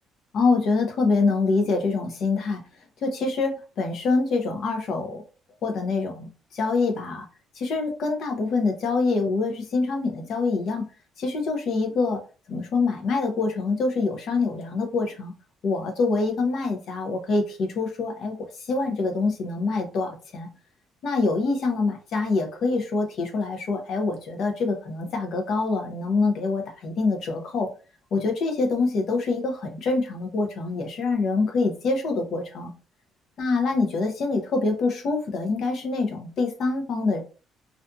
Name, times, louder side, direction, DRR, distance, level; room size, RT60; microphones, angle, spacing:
voice 1, 0.3-2.6 3.0-5.2 5.6-7.3 7.5-10.9 11.2-12.2 12.5-15.3 15.6-20.5 21.0-27.7 28.1-32.7 33.4-37.2, left 3 dB, 55° left, 3 dB, 0.7 m, -25 dB
2.5 x 2.3 x 2.6 m, 0.34 s
cardioid pair, 135°, 0 cm